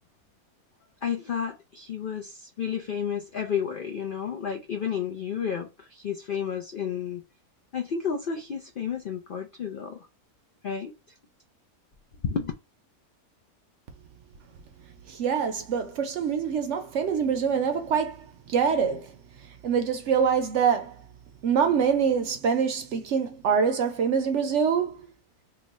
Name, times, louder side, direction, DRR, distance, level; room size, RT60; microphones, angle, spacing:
voice 1, 1.0-7.2 7.7-10.1 10.6-10.9 12.2-12.5, left 7 dB, 80° left, 0.4 m, -31 dB
voice 2, 15.1-18.2 18.5-19.1 19.6-20.9 21.4-25.0, right 6 dB, 65° right, 0.8 m, -25 dB
2.9 x 2.2 x 3.9 m
omnidirectional pair, 1.6 m